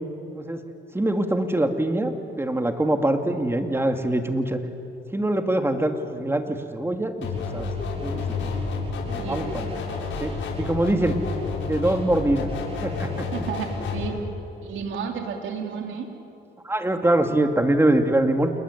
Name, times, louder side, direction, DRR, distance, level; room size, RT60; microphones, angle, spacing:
voice 1, 0.9-4.6 5.1-7.7 8.0-8.2 9.1-9.7 10.2-10.3 10.6-11.1 11.6-12.5 12.8-13.3 16.6-18.5, right 1 dB, 10° right, 5 dB, 2.6 m, -23 dB
sound 1, 7.2-14.1, left 4 dB, 70° left, 7.3 m, -30 dB
voice 2, 13.3-14.2 14.6-16.1, right 6 dB, 75° right, 3 dB, 3.4 m, -32 dB
28.5 x 20.5 x 10.0 m, 2.7 s
cardioid pair, 90°, 20 cm